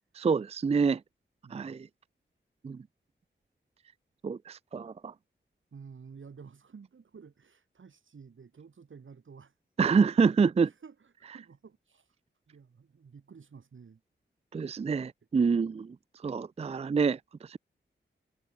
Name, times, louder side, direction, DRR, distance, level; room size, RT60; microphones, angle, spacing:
voice 1, 0.1-1.0 1.5-1.8 2.6-2.8 4.2-5.1 9.8-10.7 14.5-16.0 16.2-17.6, right 5 dB, 35° right, 0.4 m, -27 dB
voice 2, 1.4-1.8 5.7-9.5 10.6-12.1 12.5-14.0, right 5 dB, 85° right, 7.7 m, -51 dB
wide cardioid pair, 115°, 20 cm